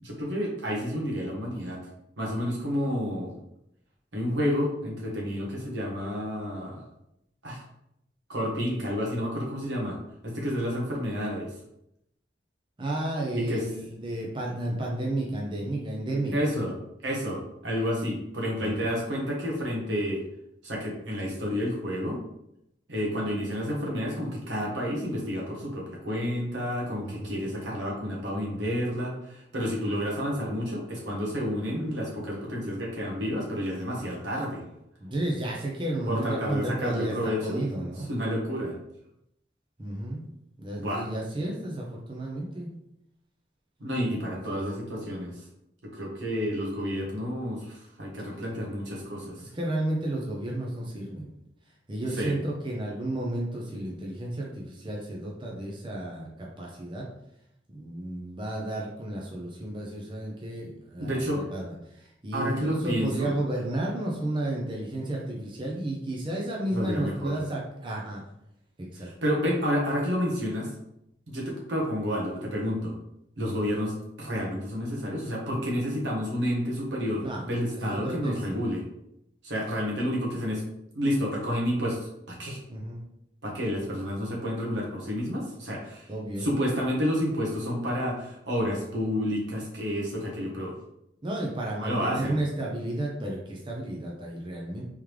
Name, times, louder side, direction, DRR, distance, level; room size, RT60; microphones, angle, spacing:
voice 1, 0.0-1.8 2.2-3.3 4.1-6.8 7.4-7.6 8.3-10.0 10.2-11.5 13.5-13.6 16.3-16.7 17.0-20.2 20.6-22.2 22.9-34.6 36.1-37.6 38.1-38.7 40.8-41.0 43.8-45.3 45.8-49.4 52.2-52.4 61.0-61.5 62.3-63.3 66.7-67.3 69.0-70.7 71.3-73.0 73.4-78.8 79.4-80.6 80.9-82.6 83.4-86.1 86.4-90.8 91.8-92.4, equal, 80° right, -2 dB, 1.2 m, -30 dB
voice 2, 12.8-16.3 18.6-18.8 27.0-27.5 35.0-38.1 39.8-40.3 40.6-42.7 44.3-44.6 49.3-51.3 51.9-57.1 57.7-68.2 68.8-69.1 73.4-73.7 77.2-77.4 77.7-78.6 82.7-83.0 86.1-86.5 91.2-94.8, right 1 dB, 25° right, -2 dB, 0.6 m, -32 dB
3.6 x 3.2 x 3.1 m, 0.79 s
head